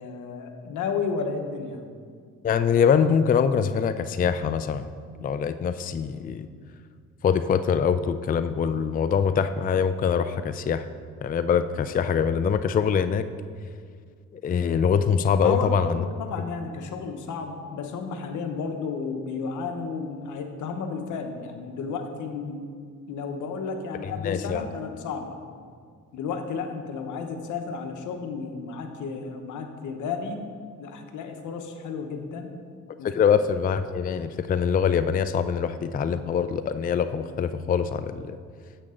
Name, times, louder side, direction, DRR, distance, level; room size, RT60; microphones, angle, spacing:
voice 1, 0.0-1.8 15.4-22.6 23.1-25.3 26.1-30.4 30.8-32.5 33.0-33.1, left 5 dB, 80° left, 5 dB, 1.1 m, -32 dB
voice 2, 2.4-4.8 5.2-6.5 7.2-10.8 11.2-13.2 14.4-16.0 24.0-24.7 33.0-38.4, left 7 dB, 30° left, 11 dB, 0.4 m, -24 dB
9.9 x 7.8 x 3.8 m, 2.1 s
cardioid pair, 90°, 30 cm